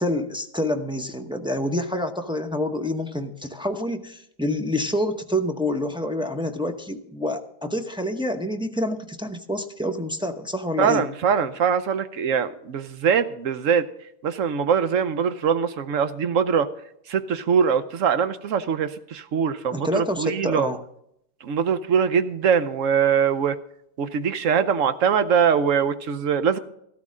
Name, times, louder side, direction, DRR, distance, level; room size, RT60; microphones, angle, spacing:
voice 1, 0.0-11.1 19.7-20.8, left 1 dB, 5° right, 4 dB, 0.4 m, -27 dB
voice 2, 10.8-13.9 14.2-16.7 17.1-20.7 21.4-23.6 24.0-26.6, right 7 dB, 60° right, 12 dB, 1.0 m, -22 dB
13.5 x 13.0 x 3.7 m, 0.74 s
omnidirectional pair, 1.7 m